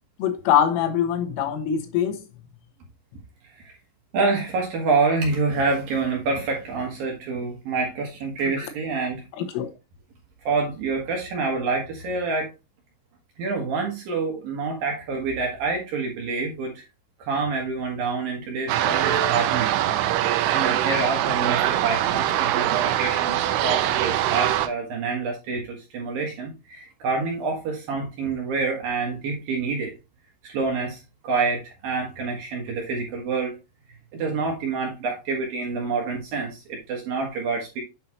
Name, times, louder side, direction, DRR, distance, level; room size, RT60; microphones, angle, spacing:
voice 1, 0.2-2.2 9.4-9.7, left 9 dB, 85° left, 3.8 m, -23 dB
voice 2, 4.1-9.2 10.4-12.5 13.4-16.8 17.2-19.8 20.2-29.9 30.4-33.6 34.1-37.8, right 4 dB, 60° right, 2.6 m, -27 dB
sound 1, 18.7-24.7, right 12 dB, 85° right, 2.3 m, -23 dB
8.5 x 5.6 x 3.0 m
omnidirectional pair, 5.6 m